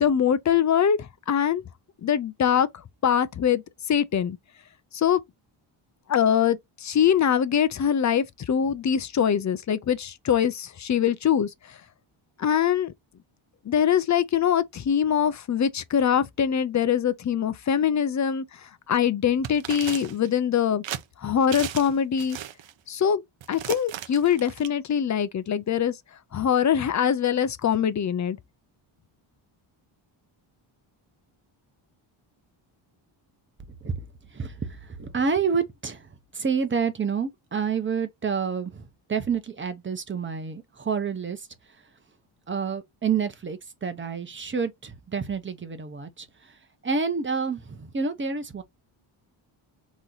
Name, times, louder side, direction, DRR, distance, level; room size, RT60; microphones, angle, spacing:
voice 1, 0.0-1.6 2.0-2.7 3.0-4.4 4.9-5.2 6.1-11.8 12.4-12.9 13.6-20.8 21.2-22.4 22.9-25.9 26.3-28.4, left 8 dB, 35° left, 0.5 m, -23 dB
sound 1, 19.4-20.3 20.8-21.0 21.5-21.9 22.2-22.7 23.4-24.7, right 11 dB, 65° right, 0.8 m, -35 dB
voice 2, 33.7-41.5 42.5-46.6 46.8-48.6, right 5 dB, 25° right, 0.9 m, -29 dB
4.0 x 3.1 x 3.9 m
wide cardioid pair, 145°, 49 cm